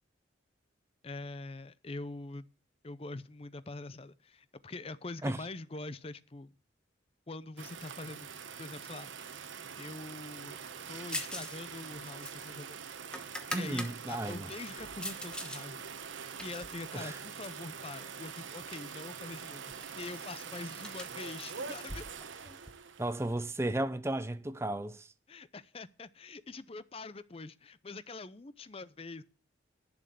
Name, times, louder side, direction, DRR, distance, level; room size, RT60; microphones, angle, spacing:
voice 1, 1.0-2.5 2.8-6.5 7.3-8.3 8.6-9.1 9.8-10.6 10.9-12.8 13.5-15.9 16.4-22.0 25.3-29.2, left 3 dB, 30° left, 0.6 m, -44 dB
sound 1, 7.6-23.4, right 6 dB, 85° right, 1.0 m, -44 dB
sound 2, 11.1-11.6 11.8-13.9 14.4-15.6 16.0-17.7 18.4-18.9 19.2-19.3 19.6-22.7, left 1 dB, 5° left, 1.1 m, -43 dB
voice 2, 13.5-14.5 16.9-17.2 23.0-25.1, right 1 dB, 15° right, 0.5 m, -34 dB
11.0 x 6.2 x 8.3 m
head